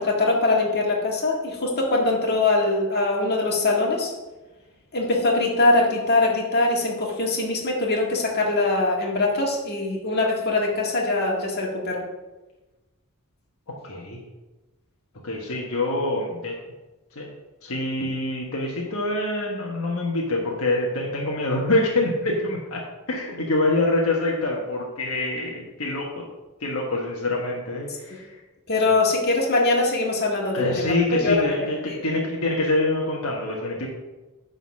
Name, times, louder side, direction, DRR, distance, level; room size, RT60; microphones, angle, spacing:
voice 1, 0.0-4.1 4.9-12.0 28.7-31.3 31.6-32.0, left 2 dB, 50° left, -2 dB, 1.9 m, -22 dB
voice 2, 13.7-14.2 15.2-16.6 17.1-17.3 17.6-26.1 26.6-28.4 30.5-33.9, left 2 dB, 70° left, -2 dB, 1.3 m, -25 dB
9.5 x 4.1 x 6.2 m, 1.1 s
head